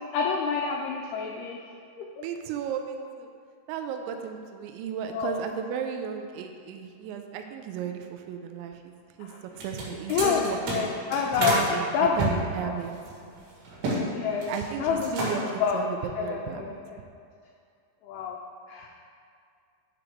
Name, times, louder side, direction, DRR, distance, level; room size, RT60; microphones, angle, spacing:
voice 1, 0.1-1.6 5.1-5.4 9.3-9.4 10.1-11.7 11.9-12.3 12.6-12.7 14.1-14.5 14.8-15.8 16.2-17.0 18.0-18.4 18.7-19.0, left 6 dB, 85° left, 0 dB, 2.3 m, -28 dB
voice 2, 2.2-3.3 3.7-9.3 9.6-10.9 11.4-13.0 14.5-16.7, right 7 dB, 90° right, 5 dB, 2.9 m, -34 dB
sound 1, 9.5-11.7 12.2-14.0 14.3-14.7 15.0-15.6, right 1 dB, 70° right, 3.8 m, -30 dB
9.4 x 4.7 x 5.1 m, 2.3 s
omnidirectional pair, 5.1 m